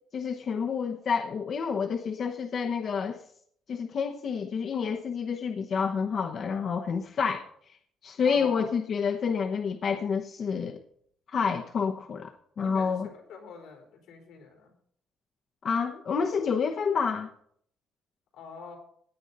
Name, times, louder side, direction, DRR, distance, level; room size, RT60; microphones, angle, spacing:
voice 1, 0.1-3.2 3.7-7.4 8.0-10.8 11.3-13.1 15.6-17.3, left 6 dB, 50° left, 4 dB, 0.9 m, -29 dB
voice 2, 8.2-8.7 12.6-14.7 18.3-18.8, left 5 dB, 90° left, 1 dB, 3.9 m, -45 dB
16.5 x 9.1 x 4.1 m, 0.65 s
cardioid pair, 110°, 0 cm